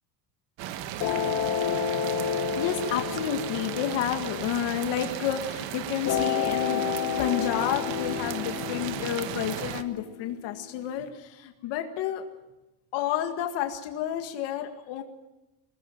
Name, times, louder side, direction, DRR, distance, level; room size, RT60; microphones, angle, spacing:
sound 1, 0.6-9.8, right 11 dB, 70° right, 1.5 m, -36 dB
sound 2, 1.0-5.4 6.1-11.0, left 8 dB, 45° left, 1.9 m, -31 dB
voice 1, 2.6-6.8 7.2-12.2 12.9-15.0, left 10 dB, 65° left, 5 dB, 2.0 m, -30 dB
23.0 x 19.0 x 7.8 m, 0.98 s
cardioid pair, 175°, 45 cm